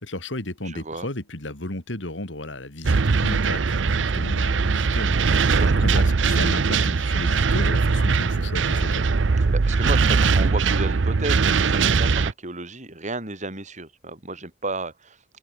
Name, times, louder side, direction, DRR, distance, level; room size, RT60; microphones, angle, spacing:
voice 1, 0.0-5.2 5.4-9.0, left 1 dB, 75° left, 3.5 m, -33 dB
voice 2, 0.6-1.1 5.5-6.0 9.4-15.2, right 2 dB, 40° right, 6.9 m, -33 dB
sound 1, 2.8-12.3, right 4 dB, 75° right, 0.7 m, -21 dB
open air
head